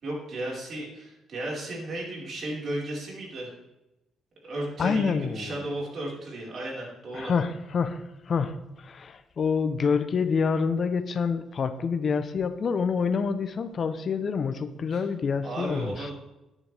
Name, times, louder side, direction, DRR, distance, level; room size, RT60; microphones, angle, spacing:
voice 1, 0.0-3.5 4.4-7.3 14.9-15.1 15.4-16.1, right 1 dB, 55° right, -3 dB, 4.7 m, -34 dB
voice 2, 4.8-5.6 7.1-16.1, left 5 dB, 50° left, 11 dB, 0.8 m, -27 dB
12.5 x 9.9 x 3.4 m, 0.94 s
cardioid pair, 90°, 0 cm